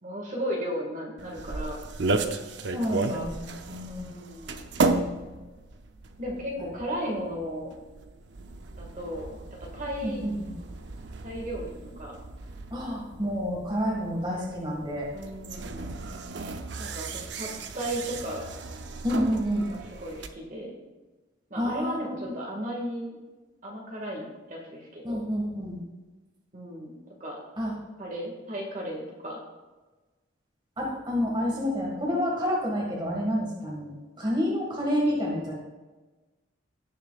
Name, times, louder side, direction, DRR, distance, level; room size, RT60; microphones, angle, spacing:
voice 1, 0.0-1.8 2.8-3.3 3.9-4.7 6.2-7.7 8.8-9.3 9.7-10.2 11.2-12.1 15.1-16.0 16.8-17.5 17.7-18.5 19.7-20.8 21.5-23.2 23.6-25.2 26.5-27.4 28.0-29.4, equal, 40° right, -1 dB, 1.9 m, -35 dB
sound 1, 1.2-20.3, right 3 dB, 60° right, 0.6 m, -34 dB
voice 2, 2.7-4.1 10.0-10.5 12.7-15.1 19.0-19.7 21.6-22.3 25.0-25.8 27.6-27.7 30.8-35.5, equal, 25° right, -3 dB, 1.9 m, -29 dB
17.5 x 6.6 x 2.4 m, 1.2 s
head